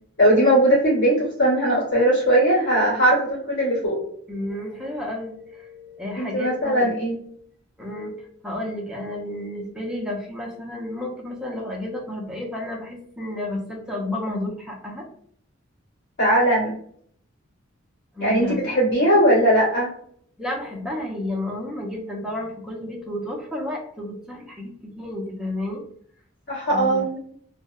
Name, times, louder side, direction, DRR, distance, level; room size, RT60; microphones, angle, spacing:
voice 1, 0.2-4.0 6.2-7.2 16.2-16.7 18.2-19.9 26.5-27.2, right 1 dB, 60° left, -7 dB, 1.4 m, -19 dB
voice 2, 4.3-6.9 7.8-15.1 18.1-18.6 20.4-25.8 26.7-27.0, left 1 dB, 5° right, -2 dB, 0.5 m, -31 dB
2.6 x 2.0 x 2.3 m, 0.63 s
head